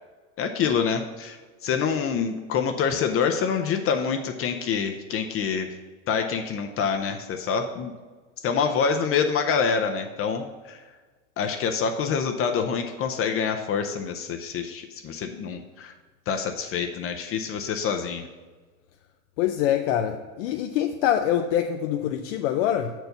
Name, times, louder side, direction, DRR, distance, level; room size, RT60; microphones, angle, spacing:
voice 1, 0.4-1.4 1.6-5.7 6.1-7.9 8.4-10.8 11.4-15.9 16.3-18.3, left 6 dB, 35° left, 5 dB, 0.6 m, -26 dB
voice 2, 19.4-22.9, left 10 dB, 75° left, 5 dB, 0.6 m, -25 dB
6.6 x 4.6 x 6.6 m, 1.4 s
supercardioid pair, 115°, 37 cm